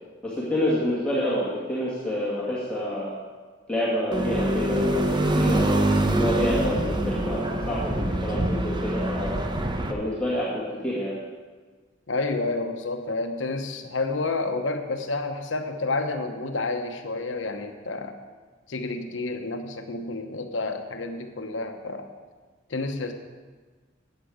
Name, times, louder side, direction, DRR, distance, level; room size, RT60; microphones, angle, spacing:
voice 1, 0.2-3.1 3.7-5.0 5.3-9.4 9.9-11.2, left 1 dB, 5° left, -10 dB, 2.1 m, -28 dB
sound 1, 4.1-9.9, right 1 dB, 25° right, 0.8 m, -25 dB
voice 2, 12.1-18.2 18.7-22.1 22.7-23.1, left 3 dB, 80° left, 6 dB, 1.1 m, -30 dB
13.5 x 8.5 x 5.0 m, 1.4 s
head